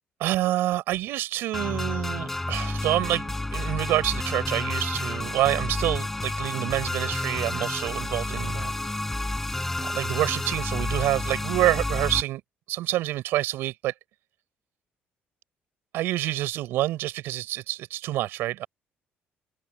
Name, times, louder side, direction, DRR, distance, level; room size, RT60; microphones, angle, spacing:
voice 1, 0.2-8.7 9.8-12.4 12.7-13.9 15.9-18.7, right 15 dB, 80° right, 5.6 m, -27 dB
sound 1, 1.5-12.2, left 2 dB, 5° left, 7.6 m, -30 dB
open air
cardioid pair, 175°, 4 cm